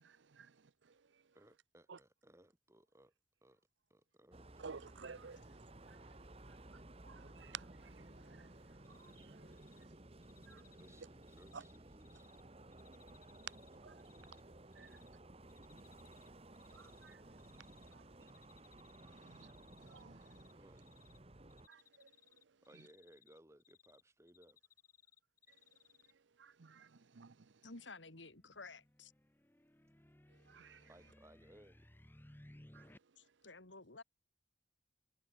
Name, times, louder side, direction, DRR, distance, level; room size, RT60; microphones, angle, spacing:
voice 1, 1.3-3.1 3.4-3.6 3.9-4.9 10.8-12.3 20.5-21.0 22.6-24.6 30.9-31.9, right 1 dB, 15° right, 4.0 m, -64 dB
sound 1, 4.3-21.7, right 1 dB, 35° right, 1.7 m, -57 dB
voice 2, 4.6-5.4 7.0-7.7 10.5-10.6 11.5-11.6 13.8-13.9 14.8-14.9 16.8-17.2 19.3-19.5 19.9-20.2 21.7-22.1 26.4-26.9 27.2-27.3 30.5-30.8 32.7-32.8, right 6 dB, 80° right, 0.7 m, -51 dB
Cricket, 8.8-9.2 9.5-9.8 10.2-12.4 12.7-14.4 14.7-15.1 15.5-16.3 16.5-17.9 18.2-20.5 20.8-21.2 21.5-24.0 24.3-26.1, left 9 dB, 50° left, 5.4 m, -68 dB
voice 3, 27.6-29.1 33.2-34.0, left 3 dB, 90° left, 3.4 m, -53 dB
sound 2, 28.0-33.0, left 1 dB, 10° left, 1.0 m, -62 dB
head